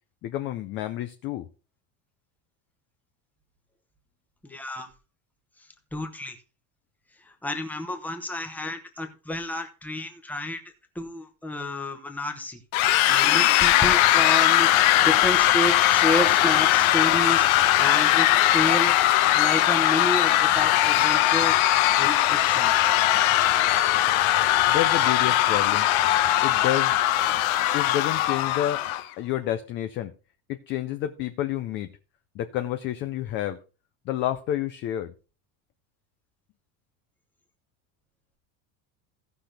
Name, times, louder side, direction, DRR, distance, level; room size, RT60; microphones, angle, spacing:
voice 1, 0.2-1.5 24.7-25.9 26.4-27.0 27.7-28.8 29.2-30.1 30.5-31.9 32.4-33.6 34.1-35.1, left 12 dB, 30° left, 0.4 m, -29 dB
voice 2, 4.4-4.9 5.9-6.4 7.2-10.6 10.9-14.7 15.0-17.5 17.8-18.9 19.4-21.6 22.0-22.7, left 1 dB, 5° left, 0.9 m, -30 dB
sound 1, 12.7-29.0, left 14 dB, 75° left, 1.1 m, -20 dB
sound 2, 20.3-26.2, left 9 dB, 50° left, 1.4 m, -32 dB
16.5 x 5.9 x 3.3 m
cardioid pair, 180°, 41 cm